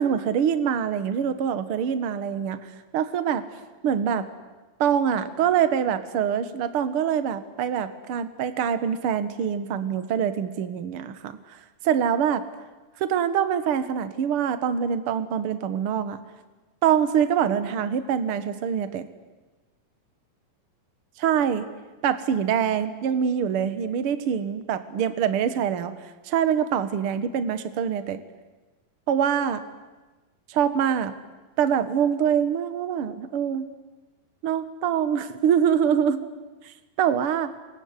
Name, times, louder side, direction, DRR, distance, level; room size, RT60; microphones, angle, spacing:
voice 1, 0.0-3.4 3.8-4.3 4.8-11.6 11.8-12.4 13.0-16.2 16.8-19.1 21.2-21.7 22.0-25.9 26.2-28.2 29.1-29.6 30.5-31.1 31.6-33.7 34.4-36.3 37.0-37.5, right 8 dB, 55° right, 12 dB, 1.6 m, -24 dB
26.5 x 22.5 x 9.7 m, 1.2 s
omnidirectional pair, 4.3 m